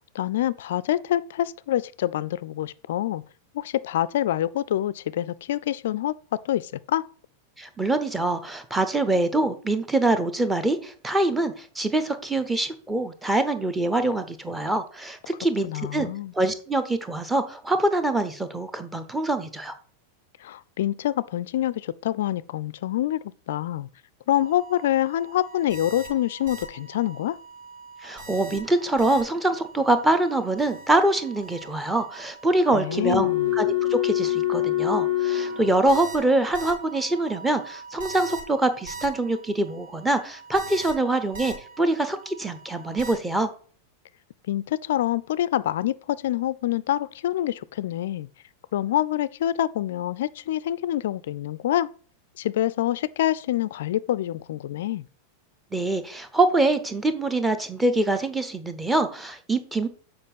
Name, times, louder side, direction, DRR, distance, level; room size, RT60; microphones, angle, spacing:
voice 1, 0.1-3.2 3.5-7.1 15.6-16.3 20.4-23.9 24.3-27.4 32.7-33.5 44.5-48.3 48.7-51.9 52.4-55.0, left 12 dB, 55° left, 0.3 m, -26 dB
voice 2, 7.6-16.1 16.3-19.7 28.0-43.5 55.7-59.9, right 2 dB, 10° right, 1.0 m, -24 dB
sound 1, 24.4-24.9 25.2-26.7 26.9-27.3 27.6-29.7 30.2-39.1 40.5-41.5 41.8-41.9 43.0-43.1, left 10 dB, 55° right, 2.4 m, -30 dB
7.3 x 4.9 x 5.5 m
figure-of-eight pair, 90°, 0 cm